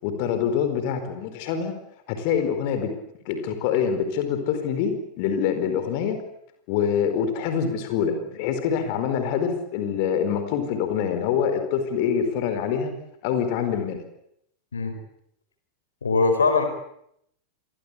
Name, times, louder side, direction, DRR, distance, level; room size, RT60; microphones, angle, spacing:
voice 1, 0.0-1.7 2.1-2.9 3.2-6.2 6.7-12.9 13.2-14.0, left 7 dB, 45° left, 8 dB, 4.6 m, -25 dB
voice 2, 16.0-16.6, left 4 dB, 70° left, 7 dB, 4.8 m, -21 dB
27.5 x 22.5 x 8.6 m, 0.75 s
figure-of-eight pair, 90°, 0 cm